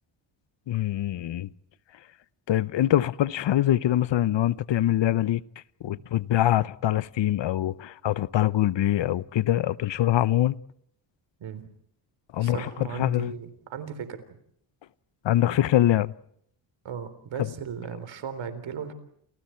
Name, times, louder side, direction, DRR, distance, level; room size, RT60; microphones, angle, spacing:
voice 1, 0.7-1.5 2.5-5.4 5.8-10.6 12.3-13.3 15.2-16.1 17.4-17.5, left 13 dB, 60° left, 0.9 m, -24 dB
voice 2, 12.4-14.2 16.8-18.9, right 7 dB, 70° right, 3.9 m, -36 dB
29.5 x 28.5 x 4.5 m
cardioid pair, 110°, 48 cm